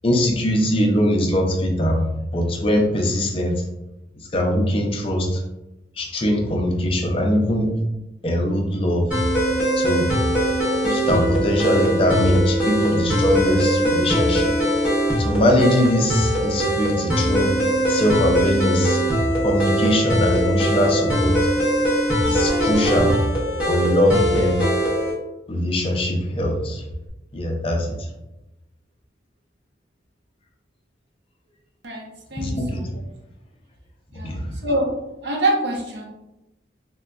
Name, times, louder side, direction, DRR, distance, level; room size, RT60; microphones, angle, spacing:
voice 1, 0.0-3.6 4.2-5.4 6.0-7.7 8.2-9.2 9.8-10.1 10.7-14.5 15.2-17.6 17.9-19.0 19.4-21.5 22.3-23.2 23.7-24.6 25.5-26.8 27.3-28.1 32.4-32.9 34.2-34.5, left 1 dB, 30° left, 1 dB, 0.5 m, -21 dB
sound 1, 9.1-25.1, equal, 5° right, 0.7 m, -21 dB
voice 2, 31.8-32.8 34.1-34.3 34.6-34.9 35.2-36.0, right 1 dB, 70° right, -1 dB, 0.7 m, -25 dB
3.7 x 2.2 x 2.2 m, 0.95 s
head